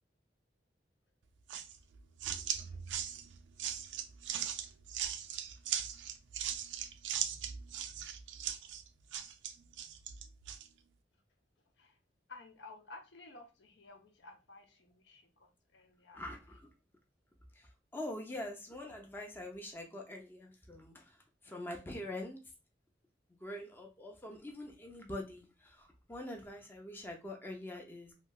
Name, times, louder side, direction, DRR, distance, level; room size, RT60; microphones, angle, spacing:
sound 1, 1.5-10.7, right 9 dB, 85° right, 0.4 m, -39 dB
voice 1, 12.3-16.4, left 3 dB, 75° left, 0.6 m, -54 dB
voice 2, 16.1-16.7 17.5-22.4 23.3-28.1, left 1 dB, 10° left, 0.5 m, -44 dB
3.0 x 2.7 x 2.2 m
head